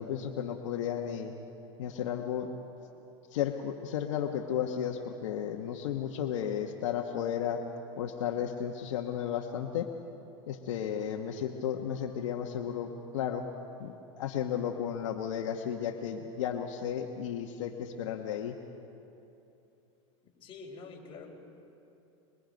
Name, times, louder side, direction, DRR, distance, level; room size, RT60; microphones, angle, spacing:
voice 1, 0.0-1.3 1.8-2.5 3.3-7.6 8.0-9.9 10.5-13.5 13.8-18.6, left 9 dB, 80° left, 3 dB, 1.3 m, -33 dB
voice 2, 20.4-21.3, left 4 dB, 35° left, -1 dB, 4.3 m, -46 dB
23.5 x 23.5 x 5.3 m, 2.9 s
supercardioid pair, 120°, 16 cm